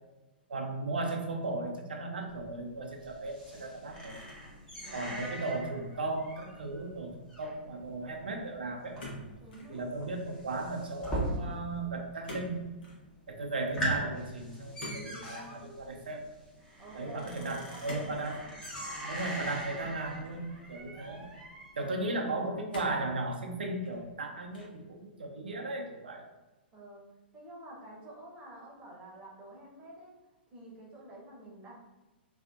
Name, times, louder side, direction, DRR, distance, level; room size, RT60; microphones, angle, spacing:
voice 1, 0.5-4.2 4.9-9.0 9.7-12.7 13.3-16.3 16.9-18.4 19.1-21.2 21.8-26.2, right 2 dB, 65° right, 2 dB, 0.5 m, -36 dB
sound 1, 2.3-11.9 12.1-12.7 13.1-13.2 13.5-21.9, equal, 10° left, 0.8 m, -41 dB
voice 2, 4.7-5.6 9.4-9.9 16.8-18.5 22.0-22.2 26.7-27.0 27.3-30.1 30.5-31.8, right 1 dB, 20° right, -4 dB, 0.9 m, -49 dB
sound 2, 9.0-9.7 10.1-10.5 12.2-12.5 12.8-13.0 14.8-15.6 17.8-18.2 18.6-18.8 19.7-20.5 21.2-21.3 22.7-23.1 23.7-24.2 24.5-24.9, left 1 dB, 60° left, 0.9 m, -45 dB
2.6 x 2.4 x 2.4 m, 1.1 s
figure-of-eight pair, 110°, 6 cm